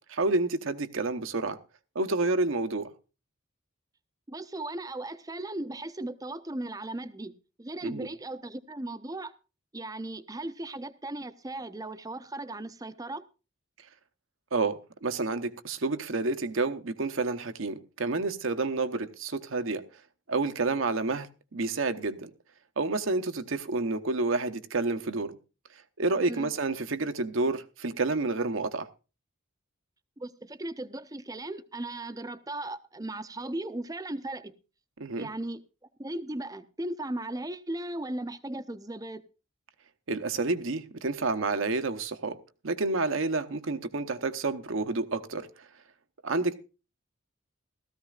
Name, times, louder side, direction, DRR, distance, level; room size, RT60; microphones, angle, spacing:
voice 1, 0.1-1.6 1.9-2.9 7.8-8.1 14.5-19.8 20.3-22.3 22.8-25.4 26.0-28.9 35.0-35.3 40.1-42.4 42.6-45.5 46.2-46.5, right 3 dB, 75° right, 0.9 m, -29 dB
voice 2, 4.3-7.3 7.6-9.3 9.7-13.2 26.3-26.5 30.2-34.5 35.2-35.6 36.0-39.2, right 1 dB, 20° right, 0.6 m, -37 dB
16.5 x 14.0 x 2.4 m
head